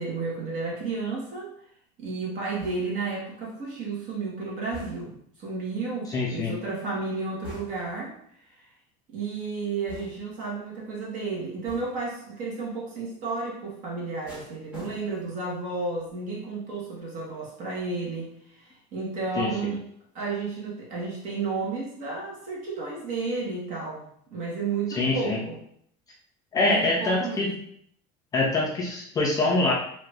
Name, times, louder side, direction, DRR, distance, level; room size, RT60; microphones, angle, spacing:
voice 1, 0.0-1.5 2.0-8.1 9.1-19.8 20.1-24.0 24.3-25.6 26.6-27.5, right 4 dB, 45° right, -3 dB, 1.1 m, -32 dB
sound 1, 2.6-3.2 4.7-5.3 7.4-8.0 9.9-10.4 11.7-12.1 14.3-15.4 15.8-16.1, left 1 dB, 5° right, 1.1 m, -45 dB
voice 2, 6.1-6.6 19.4-19.7 24.9-25.4 26.5-27.6 28.3-29.7, left 2 dB, 20° left, -2 dB, 0.3 m, -25 dB
2.7 x 2.5 x 3.3 m, 0.67 s
cardioid pair, 175°, 18 cm